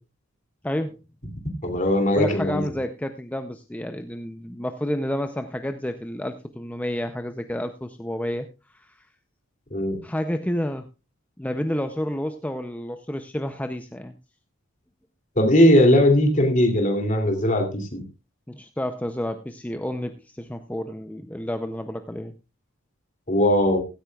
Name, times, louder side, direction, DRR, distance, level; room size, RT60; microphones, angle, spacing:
voice 1, 0.6-1.0 2.2-9.1 10.0-10.9 11.4-14.2 18.5-22.3, left 1 dB, 10° left, 7 dB, 0.6 m, -30 dB
voice 2, 1.6-2.6 9.7-10.0 15.4-18.0 23.3-23.8, left 1 dB, 40° left, 4 dB, 2.9 m, -19 dB
16.0 x 13.5 x 2.4 m, 0.29 s
head